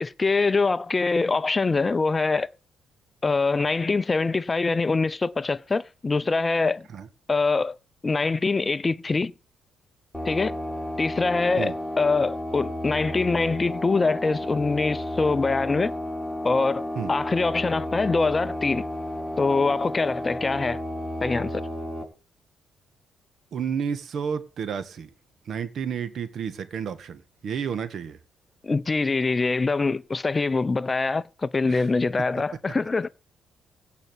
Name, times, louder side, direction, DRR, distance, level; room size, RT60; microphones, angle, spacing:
voice 1, 0.0-2.5 3.2-6.8 7.3-7.7 8.0-9.3 10.2-10.6 11.0-15.9 16.4-18.9 19.4-20.8 21.2-21.6 28.6-33.1, left 3 dB, 25° left, 0.6 m, -24 dB
sound 1, 10.1-22.0, left 1 dB, 5° right, 5.7 m, -32 dB
voice 2, 23.5-25.1 25.5-28.2 31.7-31.9, right 7 dB, 60° right, 1.8 m, -31 dB
16.5 x 5.6 x 8.3 m
cardioid pair, 90°, 0 cm